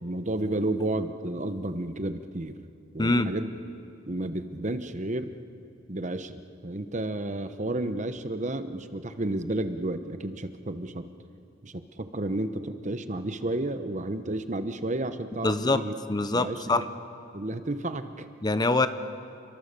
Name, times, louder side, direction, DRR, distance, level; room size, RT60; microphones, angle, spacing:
voice 1, 0.0-2.6 2.9-3.5 4.1-5.4 5.9-11.0 11.6-15.9 16.3-16.8 17.3-18.3, right 1 dB, 40° right, 9 dB, 1.0 m, -31 dB
voice 2, 3.0-3.3 15.4-15.8 16.1-16.9 18.4-18.9, left 2 dB, 20° left, 11 dB, 0.7 m, -24 dB
29.5 x 22.5 x 6.8 m, 2.5 s
head